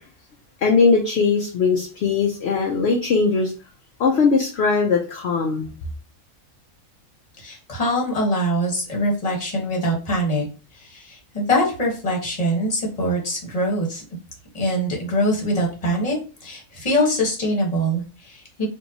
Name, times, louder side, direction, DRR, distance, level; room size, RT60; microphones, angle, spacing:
voice 1, 0.6-3.5 4.0-5.7, left 4 dB, 60° left, 1 dB, 0.8 m, -20 dB
voice 2, 7.4-10.5 10.8-14.0 14.5-18.7, equal, 30° left, -2 dB, 1.2 m, -23 dB
4.4 x 2.6 x 2.7 m, 0.35 s
omnidirectional pair, 1.4 m